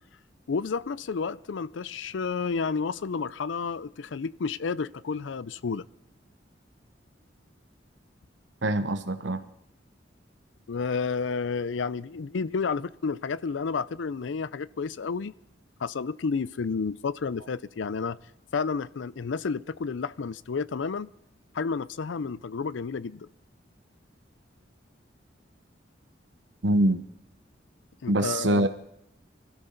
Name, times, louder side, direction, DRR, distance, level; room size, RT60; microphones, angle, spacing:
voice 1, 0.5-5.8 10.7-15.3 15.8-18.2 18.5-21.1 21.5-23.3 28.0-28.7, left 5 dB, 85° left, 0.5 m, -31 dB
voice 2, 8.6-9.4 26.6-27.0 28.1-28.7, right 1 dB, 75° right, 1.0 m, -24 dB
25.0 x 13.5 x 4.0 m
head